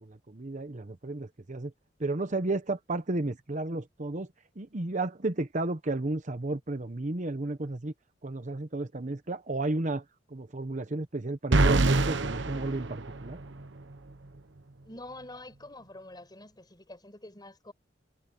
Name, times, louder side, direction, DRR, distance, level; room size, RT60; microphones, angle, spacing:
voice 1, 0.0-1.7 2.0-7.9 8.2-13.4, right 2 dB, 45° right, 1.0 m, -33 dB
sound 1, 11.5-13.7, right 2 dB, 85° right, 1.1 m, -25 dB
voice 2, 14.8-17.7, left 2 dB, 25° left, 5.7 m, -46 dB
head